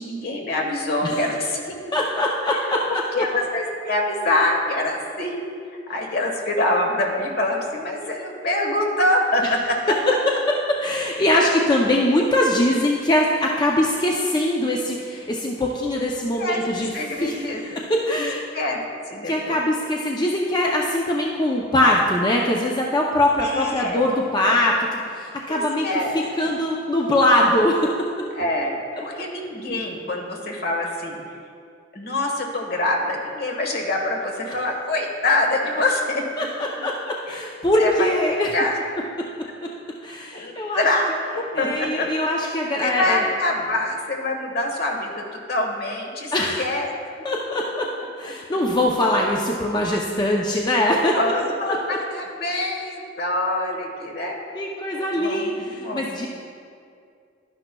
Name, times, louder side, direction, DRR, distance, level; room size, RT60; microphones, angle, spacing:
voice 1, 0.0-1.8 2.9-5.4 5.9-9.8 16.4-16.6 16.9-17.8 18.1-18.3 18.5-18.8 19.1-19.6 23.4-24.1 24.4-24.7 25.5-26.6 28.3-31.2 31.9-36.2 37.3-37.4 37.8-38.2 38.5-38.8 40.3-42.1 42.4-42.5 42.8-46.9 50.8-54.4 54.9-56.1, left 1 dB, 55° left, 1 dB, 1.3 m, -25 dB
voice 2, 1.9-3.0 9.9-10.0 10.5-16.9 17.2-18.4 19.3-25.9 26.4-27.9 36.4-38.5 40.0-40.9 41.5-43.2 46.3-46.6 47.2-51.2 51.7-51.8 54.5-56.3, left 1 dB, 25° left, -1 dB, 0.5 m, -22 dB
12.0 x 10.0 x 2.3 m, 2.3 s
head